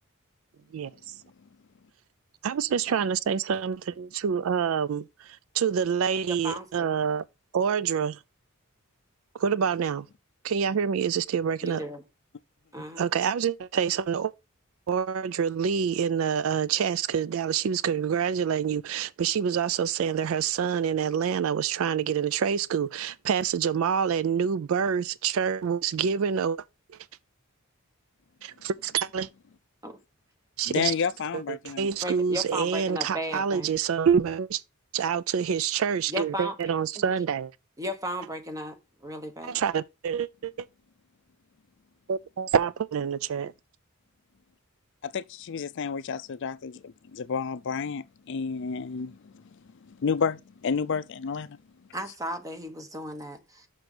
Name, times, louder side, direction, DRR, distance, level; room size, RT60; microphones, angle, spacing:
voice 1, 2.4-7.2 7.5-8.2 9.3-10.1 10.4-11.8 13.0-14.3 14.9-26.6 28.4-29.3 30.6-30.9 31.3-34.6 34.9-37.5 39.4-40.7 42.1-43.5, right 7 dB, 65° right, 0.4 m, -27 dB
voice 2, 6.2-6.9 11.6-12.0 12.7-13.1 29.8-30.0 32.0-33.7 36.1-36.6 37.0-37.1 37.8-39.6 51.9-53.7, equal, 15° right, 1.1 m, -35 dB
voice 3, 30.7-31.9 45.0-49.4 50.0-51.6, left 6 dB, 55° left, 0.4 m, -30 dB
6.1 x 6.0 x 4.9 m
head